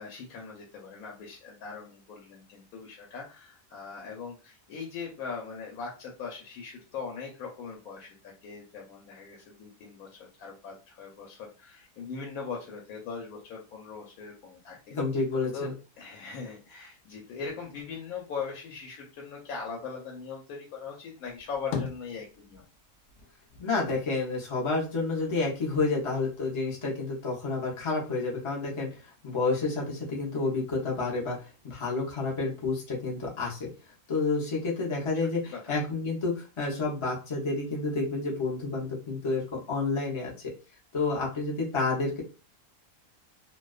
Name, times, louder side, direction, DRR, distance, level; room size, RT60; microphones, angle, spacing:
voice 1, 0.0-15.0 15.5-22.6 35.4-35.7, left 5 dB, 90° left, -1 dB, 1.1 m, -40 dB
voice 2, 14.9-15.7 23.6-33.7 34.1-40.5 40.9-42.2, left 3 dB, 40° left, -3 dB, 0.4 m, -30 dB
sound 1, 21.3-22.8 23.1-25.4 25.8-26.7, left 6 dB, 65° left, 0.7 m, -39 dB
2.4 x 2.2 x 2.3 m, 0.33 s
omnidirectional pair, 1.5 m